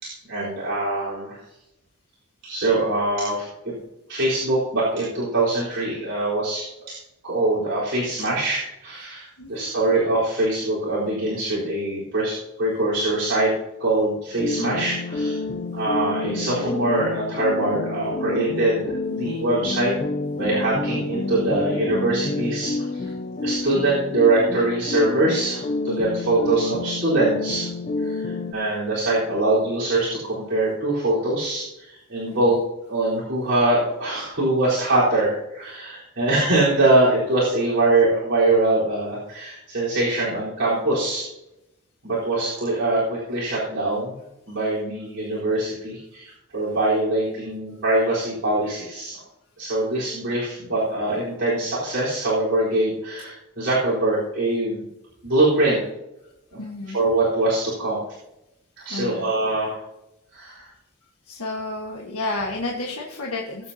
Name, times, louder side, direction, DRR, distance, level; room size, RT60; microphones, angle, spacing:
voice 1, 0.0-1.4 2.4-3.7 4.1-7.0 7.2-13.5 13.8-15.4 15.7-19.9 20.3-23.1 23.4-27.7 28.0-32.5 32.9-41.3 42.0-44.1 44.5-49.2 49.6-54.8 55.2-55.8 56.5-56.6 56.9-58.0 58.8-59.8 60.3-60.7, right 2 dB, 55° right, -9 dB, 4.1 m, -23 dB
voice 2, 9.4-10.0 32.3-32.6 46.3-46.4 56.2-56.3 56.6-57.0 58.9-59.3 61.2-63.7, left 2 dB, 90° left, -1 dB, 1.5 m, -31 dB
sound 1, 14.4-28.5, left 3 dB, 35° left, 0.5 m, -29 dB
21.0 x 8.0 x 2.8 m, 0.89 s
head